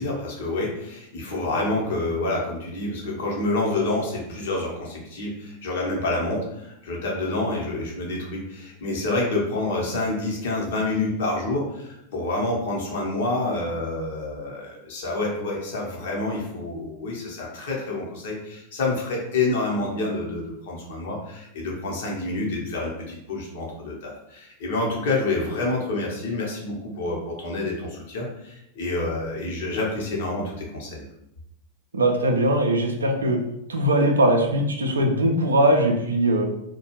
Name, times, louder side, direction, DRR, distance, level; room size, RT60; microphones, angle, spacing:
voice 1, 0.0-31.0, left 2 dB, 55° left, -2 dB, 0.8 m, -28 dB
voice 2, 31.9-33.4 33.7-36.4, right 1 dB, 75° right, 3 dB, 0.4 m, -20 dB
2.4 x 2.2 x 2.9 m, 0.82 s
figure-of-eight pair, 90°, 0 cm